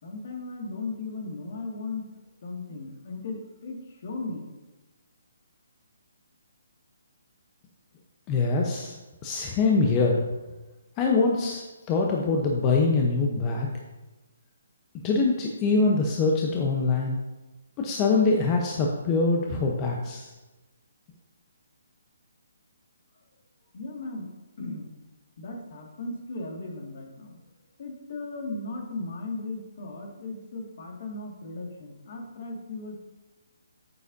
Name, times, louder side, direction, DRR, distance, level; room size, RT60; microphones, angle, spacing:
voice 1, 0.0-4.5 23.7-24.3 24.6-24.9 25.4-27.4 27.8-33.0, left 3 dB, 55° left, 1 dB, 2.0 m, -37 dB
voice 2, 8.3-9.0 9.2-10.2 11.0-13.7 15.0-17.2 17.8-20.3, left 3 dB, 25° left, 0 dB, 0.9 m, -24 dB
9.3 x 8.3 x 2.7 m, 1.1 s
figure-of-eight pair, 145°, 0 cm